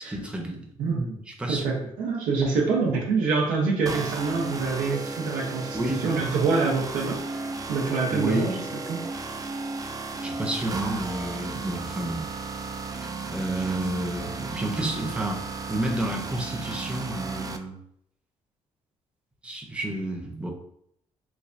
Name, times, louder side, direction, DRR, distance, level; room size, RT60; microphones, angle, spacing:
voice 1, 0.1-0.6 1.4-1.6 5.7-6.1 8.1-8.7 10.2-12.3 13.3-17.8 19.4-20.5, right 1 dB, 10° right, 1 dB, 0.7 m, -30 dB
voice 2, 0.8-1.2 1.5-8.5 8.9-9.0, right 4 dB, 85° right, -1 dB, 0.7 m, -26 dB
sound 1, 3.9-17.6, right 3 dB, 25° right, 0.3 m, -34 dB
3.2 x 2.2 x 2.6 m, 0.70 s
supercardioid pair, 65°, 14 cm